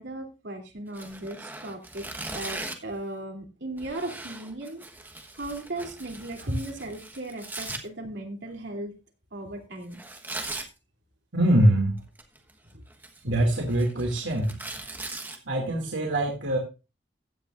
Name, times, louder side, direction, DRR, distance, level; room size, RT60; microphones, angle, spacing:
voice 1, 0.0-4.8 5.4-8.9 9.3-10.0 12.7-12.8, right 2 dB, 70° right, 3 dB, 3.0 m, -37 dB
Tearing, 0.9-2.9 3.8-7.8 9.9-10.7 12.0-12.5 12.9-15.4, right 2 dB, 10° right, 1.2 m, -39 dB
voice 2, 11.3-12.0 13.2-14.5 15.4-16.6, right 1 dB, 85° right, 0 dB, 2.5 m, -23 dB
15.5 x 9.7 x 2.5 m, 0.29 s
head